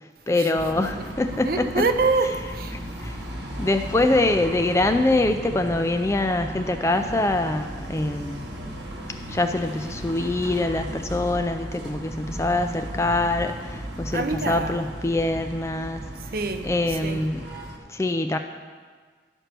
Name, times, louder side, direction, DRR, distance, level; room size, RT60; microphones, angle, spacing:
voice 1, 0.3-1.8 2.7-3.2 3.6-8.5 9.3-16.0 16.6-17.5 17.9-18.4, left 2 dB, 15° left, 7 dB, 0.3 m, -24 dB
sound 1, 0.6-17.8, equal, 70° right, 1.4 m, -36 dB
voice 2, 1.4-2.7 14.1-14.8 16.3-17.2, right 3 dB, 55° right, 8 dB, 0.6 m, -26 dB
11.5 x 4.5 x 6.7 m, 1.6 s
head